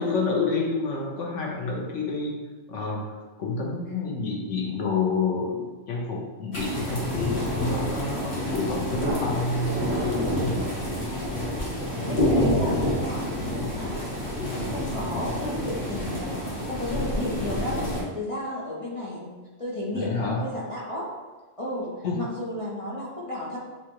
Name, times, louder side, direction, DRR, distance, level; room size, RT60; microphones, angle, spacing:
voice 1, 0.0-2.4 2.7-10.7 19.9-20.4 22.0-22.2, left 3 dB, 80° left, -1 dB, 1.3 m, -29 dB
sound 1, 6.5-18.0, left 1 dB, 50° left, 1.3 m, -28 dB
voice 2, 12.0-21.1 21.6-23.6, left 1 dB, 30° left, -6 dB, 0.8 m, -33 dB
7.3 x 2.4 x 3.0 m, 1.2 s
omnidirectional pair, 1.2 m